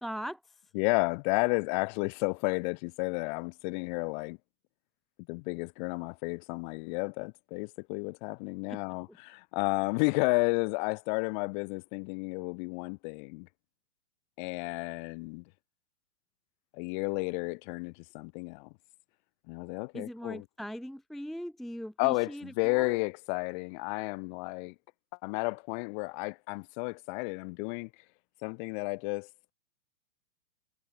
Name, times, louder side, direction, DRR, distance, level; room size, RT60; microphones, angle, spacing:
voice 1, 0.0-0.6 8.7-8.8 9.1-9.2 19.9-23.0, equal, ahead, 0.7 m, -40 dB
voice 2, 0.7-4.4 5.3-13.5 14.4-15.4 16.7-18.7 19.5-20.4 22.0-24.7 25.2-27.9 28.4-29.3, left 34 dB, 35° left, 4.7 m, -32 dB
hypercardioid pair, 155°, 39 cm